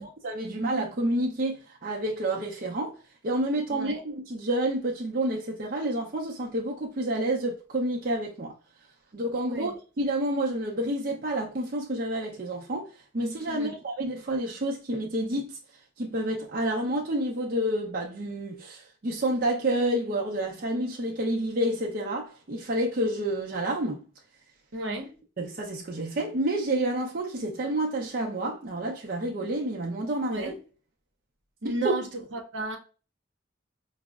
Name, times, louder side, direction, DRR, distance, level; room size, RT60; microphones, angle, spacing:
voice 1, 0.0-2.9 3.2-8.5 9.1-12.9 13.1-15.6 16.0-24.1 25.4-30.5 31.6-31.9, right 1 dB, 50° right, 0.5 m, -29 dB
voice 2, 3.7-4.0 9.4-9.7 13.5-13.8 24.7-25.1 30.3-30.6 31.6-32.1 32.3-32.8, right 2 dB, 80° right, 0.8 m, -33 dB
5.1 x 2.0 x 2.3 m
head